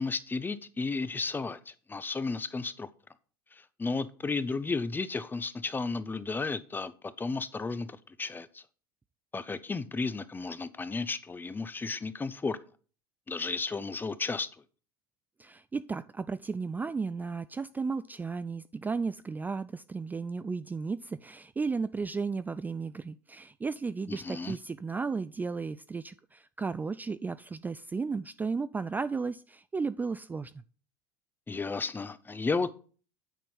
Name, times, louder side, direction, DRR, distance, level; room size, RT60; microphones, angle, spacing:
voice 1, 0.0-2.9 3.8-6.9 7.2-8.6 9.3-12.6 13.3-14.5 24.1-24.6 31.5-32.7, left 4 dB, 15° left, 0.7 m, -33 dB
voice 2, 15.4-30.5, right 4 dB, 15° right, 0.3 m, -34 dB
9.1 x 4.4 x 5.6 m
hypercardioid pair, 85°, 12 cm